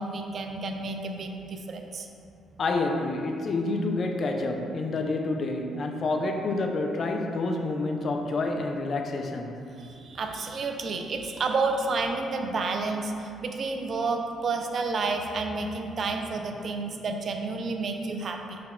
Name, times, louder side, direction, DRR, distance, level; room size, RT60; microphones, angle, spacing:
voice 1, 0.0-2.1 9.8-18.6, right 3 dB, 50° right, 4 dB, 0.3 m, -30 dB
voice 2, 2.6-9.6, left 2 dB, 50° left, 4 dB, 0.3 m, -28 dB
4.0 x 2.2 x 4.2 m, 2.7 s
cardioid pair, 90°, 0 cm